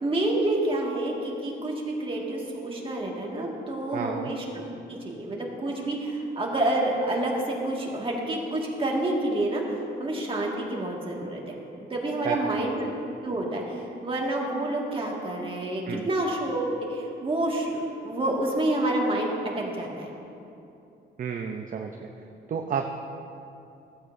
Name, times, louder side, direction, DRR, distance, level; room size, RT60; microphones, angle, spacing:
voice 1, 0.0-4.6 4.9-11.5 11.9-12.9 13.2-20.1, right 1 dB, 25° right, -2 dB, 1.9 m, -28 dB
voice 2, 3.9-4.3 12.2-12.7 15.9-16.1 21.2-21.9 22.5-22.9, right 6 dB, 40° right, 3 dB, 0.6 m, -31 dB
15.0 x 8.5 x 2.6 m, 2.7 s
cardioid pair, 90°, 20 cm